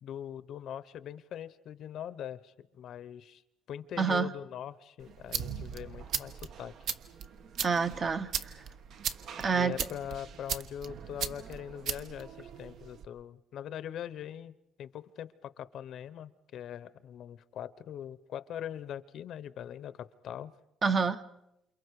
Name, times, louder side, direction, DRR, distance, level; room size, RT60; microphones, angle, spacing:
voice 1, 0.0-3.4 3.7-6.7 9.5-14.5 14.8-20.5, left 10 dB, 55° left, 16 dB, 0.8 m, -42 dB
voice 2, 4.0-4.3 7.6-8.5 9.4-9.8 20.8-21.2, right 5 dB, 30° right, 10 dB, 0.9 m, -28 dB
sound 1, 5.0-13.1, right 8 dB, 55° right, 1.1 m, -38 dB
28.5 x 28.5 x 4.8 m, 0.85 s
cardioid pair, 160°, 0 cm